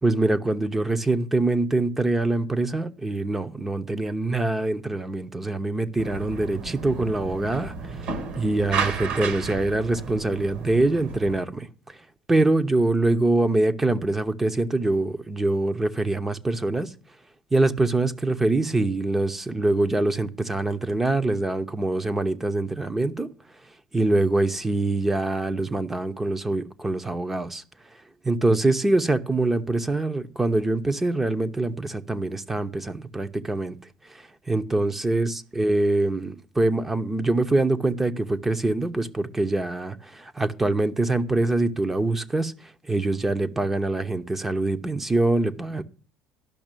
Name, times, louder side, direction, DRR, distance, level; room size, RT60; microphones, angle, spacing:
voice 1, 0.0-12.0 12.3-16.9 17.5-23.3 23.9-27.6 28.2-33.8 34.1-45.8, right 2 dB, 10° right, 0.8 m, -24 dB
sound 1, 6.0-11.4, right 5 dB, 60° right, 2.3 m, -33 dB
12.0 x 5.9 x 8.9 m
cardioid pair, 140°, 2 cm